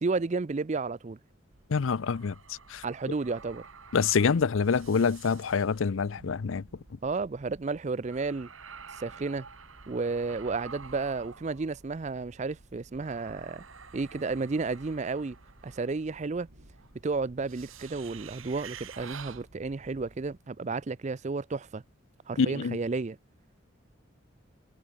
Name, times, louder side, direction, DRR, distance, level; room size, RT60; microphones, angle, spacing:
voice 1, 0.0-1.2 2.8-3.6 7.0-8.5 9.0-9.4 9.9-13.6 13.9-15.4 15.6-16.5 17.0-21.8 22.3-23.2, right 3 dB, 35° right, 0.4 m, -32 dB
sound 1, 1.5-20.4, right 5 dB, 85° right, 2.5 m, -50 dB
voice 2, 1.7-2.3 2.7-2.8 3.9-6.6 22.4-22.8, left 5 dB, 75° left, 0.5 m, -26 dB
head